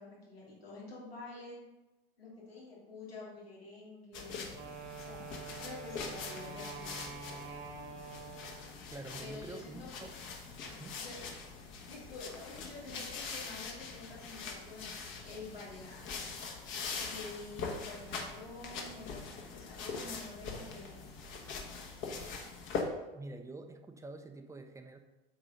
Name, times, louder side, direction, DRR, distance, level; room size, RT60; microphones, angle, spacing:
voice 1, 0.0-1.6 2.2-4.5 5.0-6.9 9.2-9.9 11.0-11.2 11.9-16.1 17.0-21.0, left 3 dB, 85° left, -6 dB, 2.8 m, -48 dB
sound 1, 4.1-22.8, left 5 dB, 40° left, 1.3 m, -43 dB
Wind instrument woodwind instrument, 4.5-8.8, right 4 dB, 40° right, 1.3 m, -46 dB
voice 2, 8.9-10.2 10.6-11.0 23.1-25.0, right 2 dB, 10° right, 5 dB, 0.7 m, -47 dB
7.8 x 4.0 x 5.2 m, 1.0 s
figure-of-eight pair, 80°, 30 cm